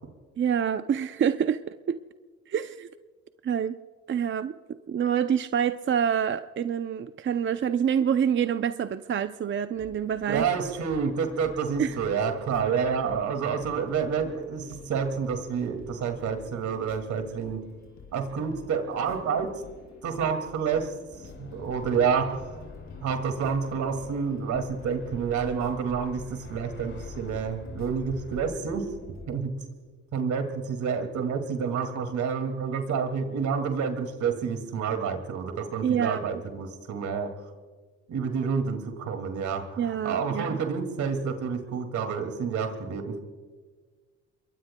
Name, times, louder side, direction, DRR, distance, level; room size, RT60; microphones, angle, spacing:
voice 1, 0.4-2.0 2.5-2.9 3.4-3.8 4.1-10.4 11.8-12.0 35.8-36.2 39.8-40.6, right 8 dB, 40° right, 10 dB, 0.5 m, -27 dB
sound 1, 9.7-29.4, left 4 dB, 65° left, 4.3 m, -49 dB
voice 2, 10.3-17.6 18.1-19.6 20.0-20.9 21.4-22.6 23.0-28.9 29.3-29.5 30.1-37.3 38.1-43.2, right 6 dB, 70° right, 6 dB, 2.3 m, -29 dB
sound 2, 21.1-28.5, left 3 dB, 40° left, 2.9 m, -46 dB
28.5 x 22.5 x 2.3 m, 1.4 s
cardioid pair, 90°, 30 cm